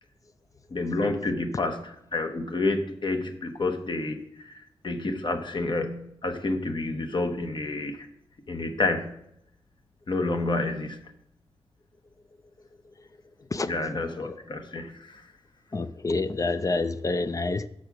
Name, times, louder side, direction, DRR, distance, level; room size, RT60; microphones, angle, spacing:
voice 1, 0.7-1.8 2.1-4.2 4.5-4.6 4.8-8.1 8.5-9.1 10.1-11.0 13.7-14.9, left 2 dB, 50° left, 0.9 m, -29 dB
voice 2, 15.7-17.7, left 3 dB, 35° left, 0.4 m, -28 dB
6.5 x 6.0 x 5.8 m
wide cardioid pair, 100°, 10 cm